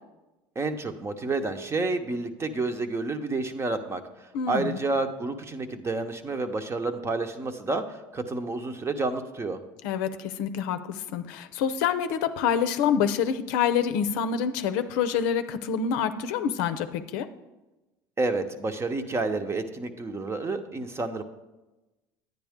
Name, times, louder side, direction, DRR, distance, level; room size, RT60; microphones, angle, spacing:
voice 1, 0.6-9.6 18.2-21.2, right 3 dB, 25° right, 8 dB, 0.9 m, -30 dB
voice 2, 4.3-4.8 9.8-17.3, left 7 dB, 80° left, 10 dB, 0.6 m, -27 dB
9.9 x 9.3 x 3.6 m, 1.1 s
supercardioid pair, 85°, 10 cm